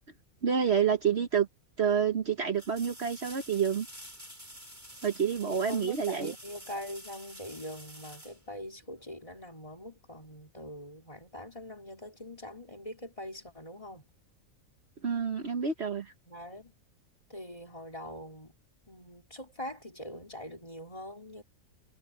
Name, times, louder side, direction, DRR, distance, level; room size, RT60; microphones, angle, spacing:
voice 1, 0.4-1.5 1.8-3.9 5.0-6.3 15.0-16.1, right 7 dB, 50° right, 1.4 m, -28 dB
sound 1, 2.5-9.2 12.0-12.1, equal, 10° right, 5.5 m, -49 dB
voice 2, 5.5-14.1 16.3-16.7 17.3-18.5 18.9-21.4, left 1 dB, 25° left, 3.3 m, -43 dB
omnidirectional pair, 1.5 m